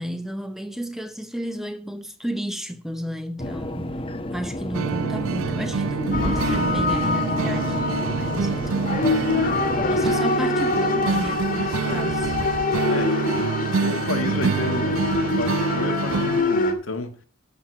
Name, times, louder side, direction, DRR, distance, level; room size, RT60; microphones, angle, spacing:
voice 1, 0.0-4.0 4.3-9.1 9.9-11.5 11.7-12.3, equal, ahead, 0.7 m, -32 dB
sound 1, 3.4-10.2, left 1 dB, 25° left, 1.0 m, -31 dB
sound 2, 4.7-16.4, right 5 dB, 85° right, 0.4 m, -27 dB
sound 3, 6.1-16.7, left 2 dB, 40° left, 1.7 m, -25 dB
voice 2, 11.4-12.1 12.9-13.2 13.8-17.2, left 2 dB, 80° left, 1.7 m, -31 dB
12.0 x 5.0 x 7.7 m
head